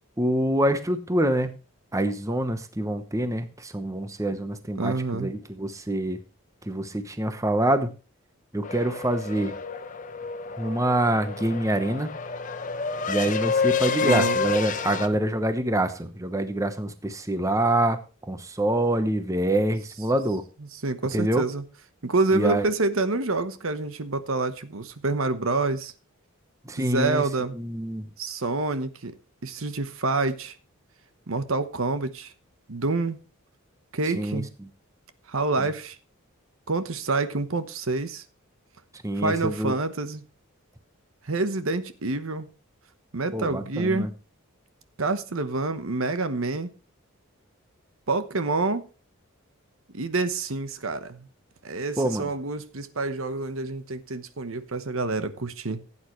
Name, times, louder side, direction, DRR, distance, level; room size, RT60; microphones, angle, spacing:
voice 1, 0.2-1.6 1.9-6.2 6.6-7.9 8.5-9.6 10.6-12.1 13.1-20.4 21.1-21.4 22.3-22.7 26.6-27.3 27.5-28.1 34.1-34.7 35.6-35.7 39.0-39.7 43.3-44.1 52.0-52.3, right 1 dB, 15° right, 0.9 m, -26 dB
voice 2, 4.8-5.3 14.0-14.4 20.8-21.6 22.0-25.9 26.8-27.6 28.2-29.1 29.4-30.6 31.3-32.3 32.7-33.2 33.9-34.5 35.3-36.0 36.7-38.2 39.2-40.2 41.2-42.5 43.1-44.1 45.0-46.7 48.1-48.8 49.9-51.3 51.6-55.8, right 3 dB, 70° right, 1.1 m, -27 dB
sound 1, 8.6-15.1, left 5 dB, 35° left, 0.9 m, -29 dB
16.0 x 8.8 x 3.1 m
head